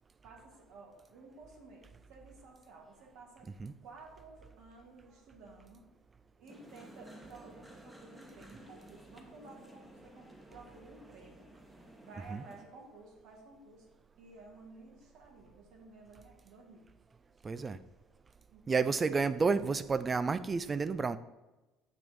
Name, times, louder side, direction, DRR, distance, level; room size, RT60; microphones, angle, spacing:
voice 1, 0.2-5.8 6.4-11.5 12.0-13.9 14.2-16.9 18.5-19.1, right 3 dB, 60° right, 1.4 m, -54 dB
sound 1, 6.5-12.6, right 1 dB, 10° right, 1.0 m, -55 dB
voice 2, 17.4-17.8 18.7-21.2, right 4 dB, 25° right, 0.3 m, -30 dB
7.9 x 3.0 x 5.1 m
figure-of-eight pair, 60°, 0 cm